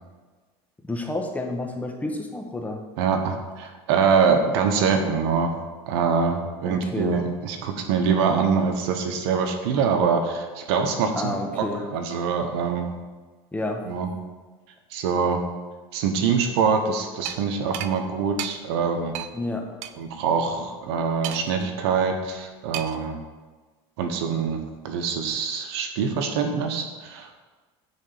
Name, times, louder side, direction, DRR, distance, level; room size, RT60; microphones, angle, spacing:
voice 1, 0.8-2.8 6.6-7.2 11.1-11.8 13.5-13.8 19.3-19.8, left 2 dB, 10° left, 2 dB, 1.4 m, -30 dB
voice 2, 3.0-5.6 5.9-11.7 11.9-12.9 13.8-14.1 14.9-15.4 15.9-19.1 20.0-23.2 24.0-27.4, right 5 dB, 85° right, 5 dB, 1.2 m, -24 dB
sound 1, 17.3-17.4 17.7-17.9 18.4-18.5 19.2-19.3 19.8-19.9 21.2-21.6 22.7-23.1, right 11 dB, 65° right, 0.6 m, -32 dB
9.8 x 4.1 x 6.8 m, 1.3 s
supercardioid pair, 110°, 13 cm